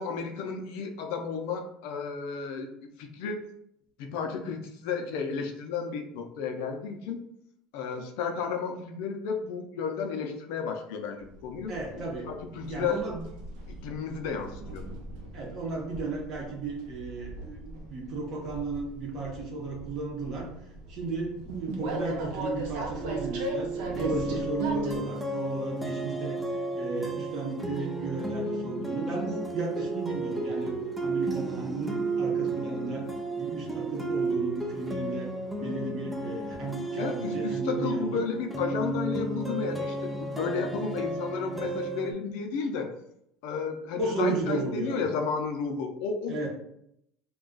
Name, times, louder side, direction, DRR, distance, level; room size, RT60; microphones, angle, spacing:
voice 1, 0.0-2.7 3.0-3.4 4.0-7.2 7.7-11.7 12.3-13.0 13.7-14.8 37.0-42.9 43.4-46.5, left 5 dB, 75° left, 4 dB, 0.5 m, -32 dB
Train, 11.2-25.0, right 1 dB, 75° right, 0.7 m, -39 dB
voice 2, 11.7-12.3 12.6-13.2 15.3-20.5 20.9-26.4 26.7-33.0 33.4-35.3 35.6-38.2 44.0-45.0 46.3-46.5, right 3 dB, 40° right, -1 dB, 0.9 m, -34 dB
sound 1, 23.0-42.1, right 2 dB, 5° right, 0.3 m, -33 dB
2.3 x 2.3 x 3.7 m, 0.76 s
cardioid pair, 145°, 0 cm